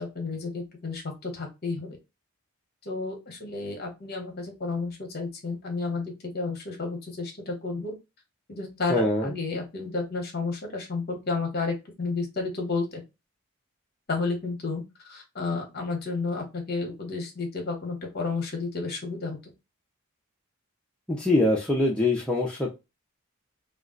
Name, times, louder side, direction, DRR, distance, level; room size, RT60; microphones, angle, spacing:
voice 1, 0.0-2.0 2.8-7.9 8.5-13.0 14.1-14.8 15.1-19.4, left 3 dB, 45° left, 2 dB, 0.9 m, -31 dB
voice 2, 8.9-9.3 21.1-22.7, left 2 dB, 5° left, -3 dB, 0.5 m, -23 dB
2.3 x 2.2 x 3.7 m, 0.25 s
head